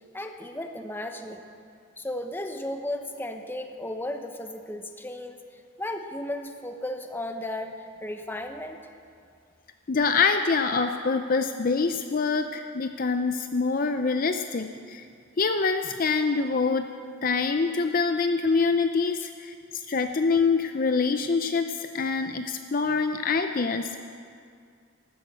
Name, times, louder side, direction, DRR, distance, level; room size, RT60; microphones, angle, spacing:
voice 1, 0.1-1.4 2.0-5.4 5.8-8.8, left 1 dB, 10° left, 5 dB, 0.9 m, -34 dB
voice 2, 9.9-15.0 15.4-16.8 17.2-24.0, left 4 dB, 40° left, 7 dB, 0.5 m, -25 dB
13.0 x 12.5 x 8.0 m, 2.3 s
head